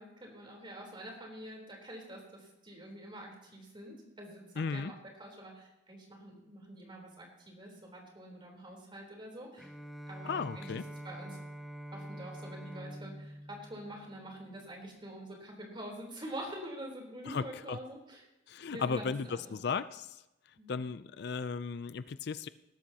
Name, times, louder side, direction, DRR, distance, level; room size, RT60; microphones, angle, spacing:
voice 1, 0.0-9.7 10.1-10.7 11.0-11.4 11.9-18.3 18.7-19.5 20.6-20.7, right 1 dB, 25° right, 0 dB, 3.7 m, -46 dB
voice 2, 4.6-4.9 10.2-10.8 17.3-17.8 18.5-20.2 20.7-22.5, left 5 dB, 60° left, 14 dB, 0.4 m, -35 dB
Bowed string instrument, 9.6-14.8, equal, ahead, 0.6 m, -46 dB
19.5 x 12.5 x 2.9 m, 0.94 s
head